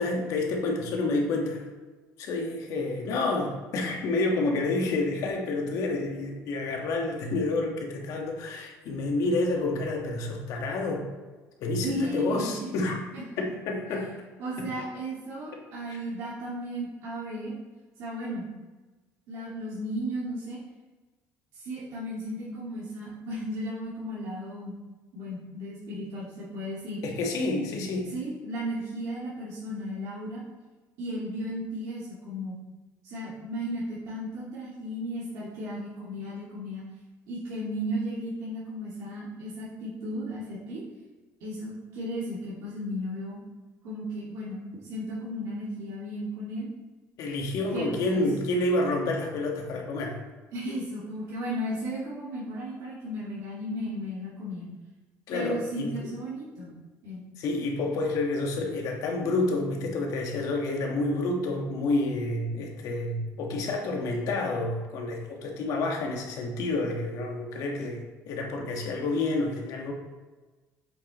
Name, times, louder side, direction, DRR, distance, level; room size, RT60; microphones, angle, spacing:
voice 1, 0.0-1.6 2.2-11.1 11.6-13.0 13.4-14.1 14.6-14.7 15.9-16.0 27.0-28.1 47.2-50.2 55.3-55.9 57.4-69.9, left 2 dB, 70° left, 1 dB, 1.4 m, -29 dB
voice 2, 11.8-12.7 13.1-13.2 14.4-17.5 18.0-18.5 19.3-20.6 21.5-24.8 25.1-27.0 28.1-30.4 31.0-32.6 33.0-36.8 37.3-40.8 41.4-43.4 43.8-46.7 47.7-48.2 50.5-54.7 55.3-56.7 57.0-57.3, equal, 75° right, -9 dB, 2.0 m, -35 dB
7.5 x 6.0 x 3.0 m, 1.2 s
cardioid pair, 135°, 6 cm